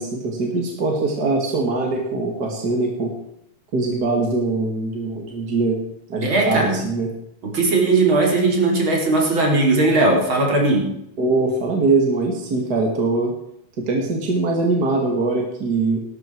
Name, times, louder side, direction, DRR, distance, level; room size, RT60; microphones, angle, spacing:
voice 1, 0.0-3.1 3.7-5.8 6.1-7.1 11.2-13.3 13.8-16.0, right 3 dB, 50° right, 0 dB, 2.8 m, -22 dB
voice 2, 6.2-6.8 7.4-10.9, right 2 dB, 75° right, -1 dB, 4.6 m, -18 dB
18.5 x 12.5 x 4.7 m, 0.77 s
omnidirectional pair, 2.3 m